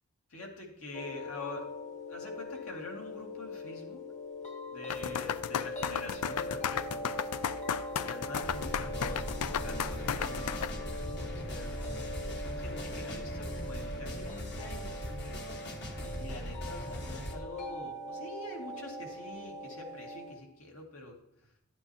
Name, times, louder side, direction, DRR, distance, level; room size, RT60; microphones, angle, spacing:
voice 1, 0.3-1.7 2.1-4.1 4.7-7.0 8.0-11.7 12.3-15.0 16.2-21.5, left 2 dB, 70° left, 1 dB, 2.1 m, -45 dB
sound 1, 0.9-20.3, left 1 dB, 35° left, 1.2 m, -42 dB
sound 2, 4.9-10.7, left 8 dB, 90° left, 0.4 m, -34 dB
sound 3, 8.4-17.3, equal, 50° left, 1.4 m, -39 dB
12.0 x 8.6 x 2.8 m, 0.80 s
head